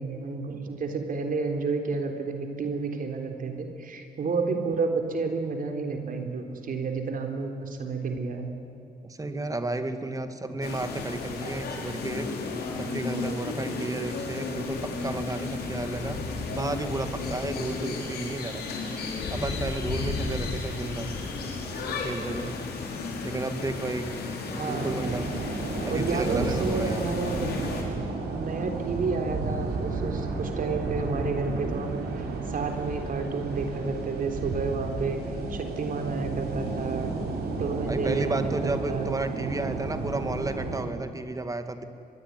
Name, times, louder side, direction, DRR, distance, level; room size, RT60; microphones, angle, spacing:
voice 1, 0.0-8.5 24.5-25.0 25.9-27.5 27.9-28.0 28.3-35.2 35.5-37.1 37.6-39.1, right 4 dB, 60° right, 5 dB, 3.7 m, -30 dB
voice 2, 9.0-12.3 12.8-16.2 16.5-18.7 19.3-21.1 21.9-22.6 23.2-24.1 24.6-25.2 25.8-27.0 37.8-41.8, right 2 dB, 20° right, 8 dB, 2.2 m, -32 dB
sound 1, 10.6-27.8, left 3 dB, 90° left, 4.9 m, -33 dB
sound 2, 24.7-40.8, right 3 dB, 85° right, 5.2 m, -32 dB
24.5 x 21.0 x 9.6 m, 2.6 s
cardioid pair, 95°, 16 cm